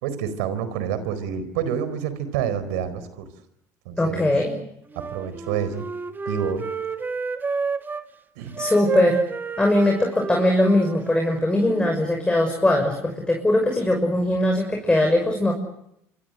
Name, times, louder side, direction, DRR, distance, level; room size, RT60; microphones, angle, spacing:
voice 1, 0.0-3.3 3.8-4.3 4.9-5.8 6.3-6.7 8.4-8.6, right 8 dB, 85° right, 13 dB, 4.4 m, -28 dB
voice 2, 4.0-4.5 8.6-9.2 9.6-15.5, left 1 dB, 10° left, 2 dB, 6.0 m, -20 dB
Wind instrument woodwind instrument, 4.9-8.1 8.5-11.9, right 4 dB, 25° right, 2.2 m, -30 dB
27.0 x 25.5 x 7.9 m, 0.78 s
supercardioid pair, 85°, 8 cm